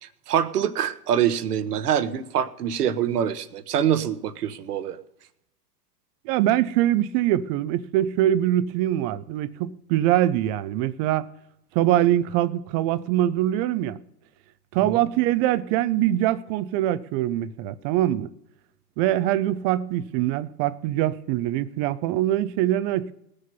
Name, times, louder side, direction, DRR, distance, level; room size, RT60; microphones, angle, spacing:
voice 1, 0.0-5.0 14.8-15.0, right 9 dB, 75° right, 1.1 m, -25 dB
voice 2, 6.2-11.3 11.7-14.0 14.7-18.3 19.0-23.1, right 13 dB, 25° right, 0.4 m, -23 dB
19.5 x 6.7 x 5.4 m
hypercardioid pair, 105°, 48 cm